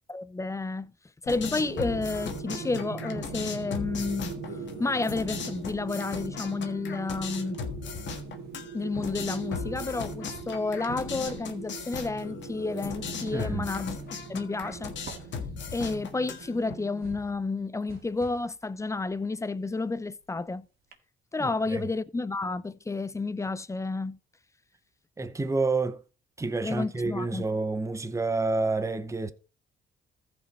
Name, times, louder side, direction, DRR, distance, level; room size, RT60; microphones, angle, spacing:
voice 1, 0.1-0.9 1.2-4.4 4.8-7.6 8.7-14.0 14.3-15.0 15.7-20.7 21.3-24.2 26.6-27.5, left 3 dB, 15° left, 0.5 m, -31 dB
sound 1, 1.3-16.7, left 5 dB, 65° left, 1.5 m, -38 dB
sound 2, 1.6-17.1, right 6 dB, 85° right, 1.2 m, -42 dB
sound 3, 5.5-6.4 6.7-20.5 20.9-21.0, right 5 dB, 50° right, 1.9 m, -53 dB
voice 2, 13.3-13.7 21.4-21.9 25.2-26.0 26.4-29.3, right 3 dB, 15° right, 0.8 m, -29 dB
14.5 x 5.2 x 4.3 m
cardioid pair, 90°, 20 cm